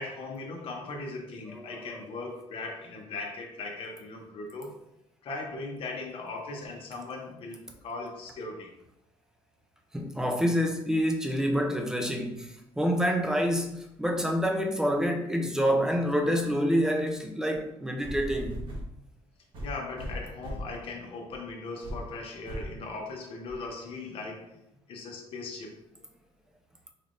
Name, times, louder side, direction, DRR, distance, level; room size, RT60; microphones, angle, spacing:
voice 1, 0.0-4.8 5.2-8.7 19.6-24.6 24.9-25.8, left 3 dB, 60° left, 0.8 m, -39 dB
voice 2, 1.5-1.9 9.9-18.7, equal, 5° right, 0.5 m, -27 dB
sound 1, 18.0-18.9 19.5-20.8 21.3-21.5 21.8-22.1 22.5-22.8 23.5-23.6, equal, 55° right, 1.2 m, -37 dB
4.1 x 3.3 x 2.5 m
cardioid pair, 135°, 11 cm